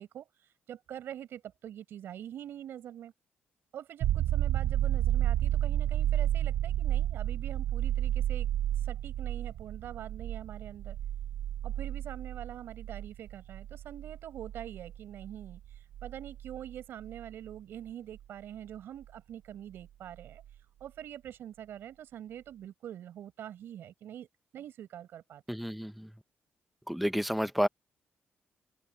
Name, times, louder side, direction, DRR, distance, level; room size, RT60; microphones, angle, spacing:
voice 1, 0.0-3.1 3.7-8.5 8.8-11.0 11.6-20.4 20.8-24.3 24.5-25.4, right 10 dB, 70° right, 5.4 m, -45 dB
sound 1, 4.0-17.5 20.2-20.3, right 12 dB, 90° right, 0.5 m, -31 dB
voice 2, 25.5-26.1 26.9-27.7, equal, ahead, 0.6 m, -30 dB
open air
cardioid pair, 165°, 4 cm